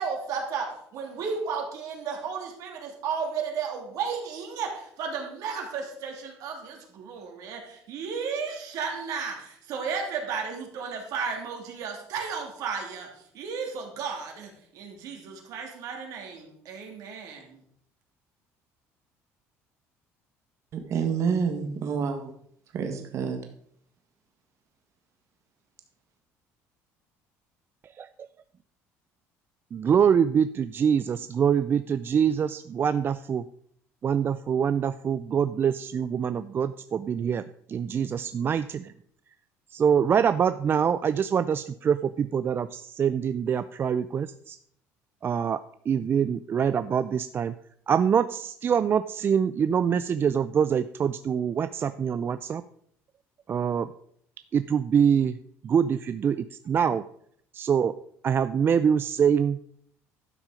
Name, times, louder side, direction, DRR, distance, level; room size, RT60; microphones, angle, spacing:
voice 1, 0.0-13.1 13.3-17.6, right 5 dB, 70° right, 1 dB, 2.9 m, -34 dB
voice 2, 20.7-22.3 22.7-23.4, right 6 dB, 55° right, 4 dB, 1.7 m, -28 dB
voice 3, 29.7-33.4 34.0-37.4 37.7-38.9 39.7-44.6 45.2-45.6 45.9-47.5 47.9-52.6 53.5-53.9 54.5-55.3 55.6-57.0 57.5-57.9 58.2-59.6, right 7 dB, 35° right, 13 dB, 0.4 m, -24 dB
11.5 x 6.1 x 5.0 m, 0.67 s
cardioid pair, 105°, 6 cm